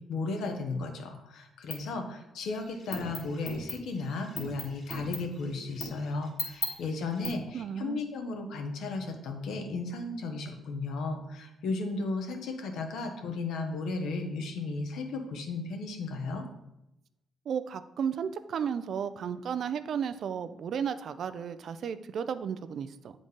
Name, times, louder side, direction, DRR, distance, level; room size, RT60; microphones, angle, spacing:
voice 1, 0.1-16.5, left 3 dB, 80° left, 4 dB, 1.0 m, -35 dB
sound 1, 1.7-1.9 2.4-7.3, left 1 dB, 50° left, 1.8 m, -39 dB
voice 2, 7.5-8.0 17.5-23.1, right 7 dB, 60° right, 11 dB, 0.4 m, -33 dB
7.8 x 3.8 x 3.7 m, 0.87 s
cardioid pair, 90°, 0 cm